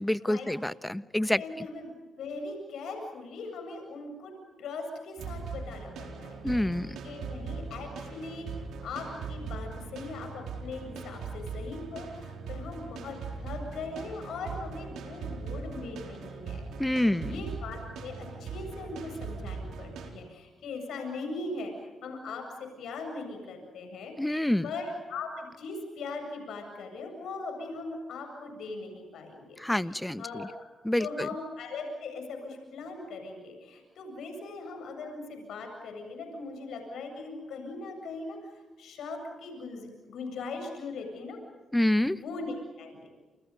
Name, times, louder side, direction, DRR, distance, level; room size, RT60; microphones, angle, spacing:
voice 1, 0.0-1.7 6.4-7.0 16.8-17.3 24.2-24.7 29.6-30.5 30.8-31.3 41.7-42.2, left 1 dB, 10° left, 14 dB, 1.1 m, -27 dB
voice 2, 1.4-1.9 2.2-4.3 4.6-6.7 7.0-24.1 24.6-30.7 31.0-38.5 38.8-41.4 42.1-43.1, left 3 dB, 80° left, 4 dB, 7.9 m, -40 dB
sound 1, 5.2-20.1, right 5 dB, 85° right, 4.4 m, -40 dB
29.5 x 28.5 x 5.4 m, 1.3 s
supercardioid pair, 55°, 0 cm